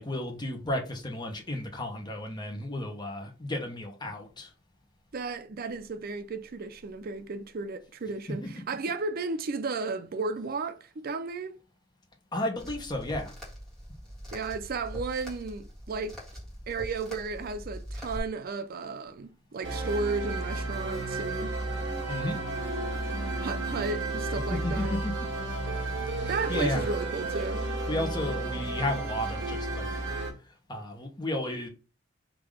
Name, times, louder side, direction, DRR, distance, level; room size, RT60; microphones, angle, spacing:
voice 1, 0.0-4.5 8.4-8.5 12.3-13.3 22.1-22.4 24.5-25.1 26.1-26.8 27.9-29.9 30.4-31.7, left 1 dB, 20° left, 1.1 m, -33 dB
voice 2, 5.1-11.5 14.3-16.2 16.7-21.6 23.4-25.0 26.3-27.7, right 3 dB, 50° right, 0.5 m, -34 dB
sound 1, 12.6-18.2, equal, 5° left, 1.7 m, -42 dB
sound 2, 19.6-30.3, right 2 dB, 65° right, 1.6 m, -32 dB
3.8 x 2.8 x 4.8 m
head